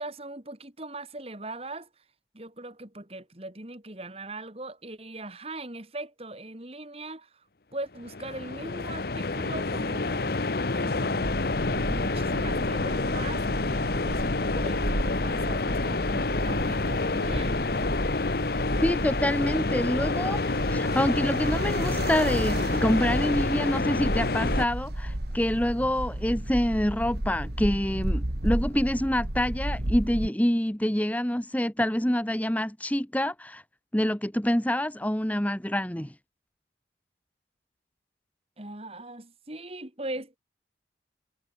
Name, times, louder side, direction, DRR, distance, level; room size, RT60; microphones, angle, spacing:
voice 1, 0.0-1.9 2.3-7.4 7.7-10.4 10.7-11.4 11.7-17.6 38.6-40.4, right 2 dB, 30° right, 2.6 m, -40 dB
sound 1, 8.0-24.7, left 3 dB, 55° left, 0.9 m, -28 dB
sound 2, 11.2-30.3, right 1 dB, 60° right, 2.5 m, -33 dB
voice 2, 18.8-33.6 33.9-36.1, equal, 10° left, 1.1 m, -26 dB
head